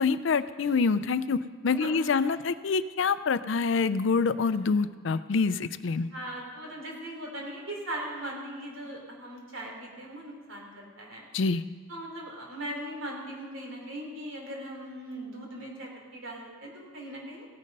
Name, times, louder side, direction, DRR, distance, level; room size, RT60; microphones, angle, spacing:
voice 1, 0.0-6.1 11.3-11.6, left 4 dB, 65° left, 14 dB, 0.5 m, -26 dB
voice 2, 6.1-11.3 11.9-17.5, right 1 dB, 80° right, -1 dB, 3.2 m, -39 dB
16.5 x 9.4 x 5.3 m, 1.5 s
head